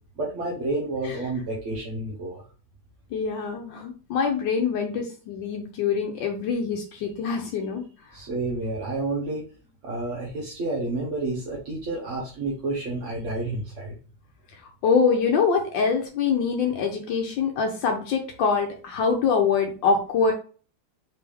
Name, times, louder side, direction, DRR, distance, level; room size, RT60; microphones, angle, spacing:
voice 1, 0.2-2.4 8.1-9.4 9.8-14.0, right 2 dB, 50° right, -3 dB, 1.1 m, -30 dB
voice 2, 3.1-7.8 14.8-20.3, left 5 dB, 80° left, 3 dB, 1.4 m, -24 dB
4.4 x 3.4 x 3.4 m, 0.40 s
omnidirectional pair, 2.0 m